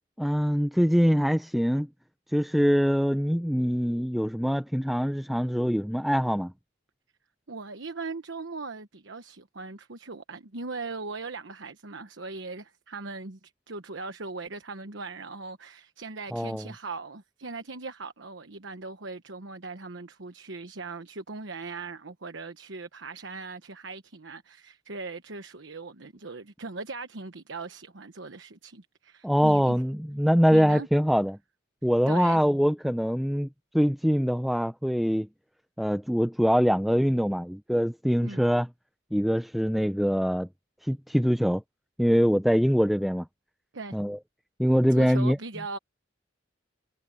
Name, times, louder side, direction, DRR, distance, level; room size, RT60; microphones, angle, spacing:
voice 1, 0.2-1.9 2.3-6.5 16.3-16.6 29.2-31.4 31.8-33.5 33.7-35.3 35.8-38.7 39.1-40.5 40.8-41.6 42.0-43.3 43.9-44.2 44.6-45.4, equal, ahead, 0.5 m, -23 dB
voice 2, 7.5-29.8 30.5-30.9 32.1-32.4 38.2-38.5 43.7-44.0 44.9-45.8, right 3 dB, 80° right, 1.1 m, -39 dB
head